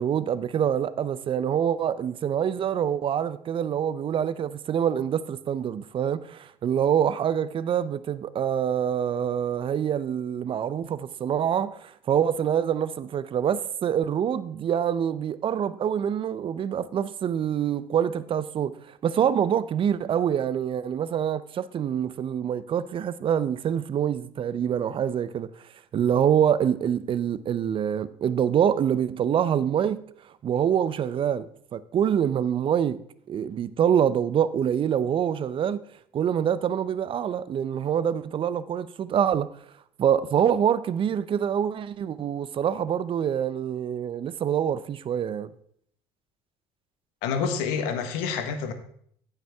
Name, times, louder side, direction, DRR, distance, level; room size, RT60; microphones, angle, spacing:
voice 1, 0.0-25.5 25.9-30.0 30.4-31.5 31.7-33.0 33.3-35.8 36.1-39.5 40.0-45.5, right 9 dB, 45° right, 0.6 m, -25 dB
voice 2, 47.2-48.7, left 6 dB, 80° left, 1.2 m, -28 dB
15.0 x 5.7 x 3.5 m
supercardioid pair, 75°, 12 cm